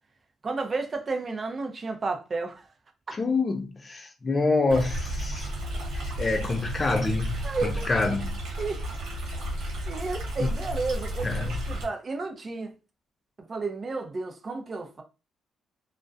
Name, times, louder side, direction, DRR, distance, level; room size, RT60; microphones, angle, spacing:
voice 1, 0.4-2.7 7.4-7.9 8.6-8.8 9.9-12.7 13.5-15.0, right 3 dB, 35° right, 0.5 m, -32 dB
voice 2, 3.1-5.5 5.9-8.4 10.4-10.5 11.2-11.8, left 3 dB, 30° left, 0.4 m, -27 dB
Stream, 4.7-11.8, equal, 80° right, 0.9 m, -33 dB
2.3 x 2.1 x 2.5 m
cardioid pair, 90°, 0 cm